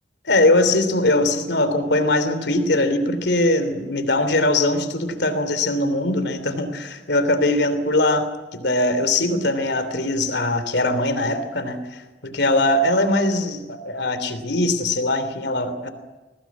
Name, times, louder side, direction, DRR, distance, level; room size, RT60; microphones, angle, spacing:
voice 1, 0.2-15.9, left 2 dB, 70° left, 10 dB, 3.1 m, -21 dB
22.5 x 18.0 x 9.5 m, 1.2 s
head